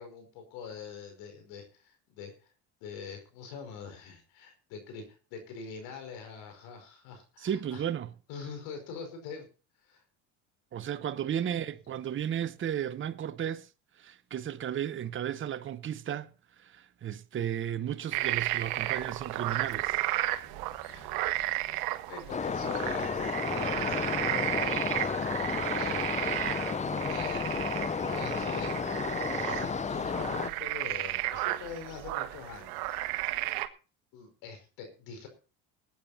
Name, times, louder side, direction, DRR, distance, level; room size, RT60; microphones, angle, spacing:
voice 1, 0.0-2.5 2.8-5.0 5.3-7.8 8.3-9.5 9.9-10.0 11.5-11.6 20.8-21.2 22.1-26.3 27.0-29.0 29.3-33.3 34.1-35.3, left 6 dB, 70° left, 5.3 m, -44 dB
voice 2, 7.4-8.1 10.7-13.7 14.0-16.3 16.6-20.0 20.9-21.2, right 9 dB, 30° right, 0.9 m, -34 dB
sound 1, 18.1-33.7, right 16 dB, 70° right, 1.4 m, -33 dB
sound 2, 18.6-26.4, left 2 dB, ahead, 6.2 m, -59 dB
sound 3, 22.3-30.5, left 5 dB, 20° left, 0.7 m, -32 dB
20.0 x 8.9 x 4.3 m
supercardioid pair, 85°, 37 cm